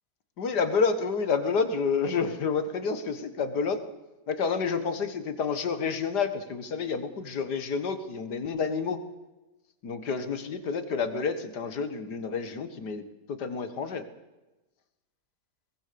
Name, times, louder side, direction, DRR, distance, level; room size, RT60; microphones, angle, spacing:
voice 1, 0.4-3.8 4.3-9.0 9.8-13.0 13.3-14.0, left 5 dB, 70° left, 10 dB, 2.1 m, -29 dB
21.5 x 19.5 x 6.9 m, 1.1 s
omnidirectional pair, 1.8 m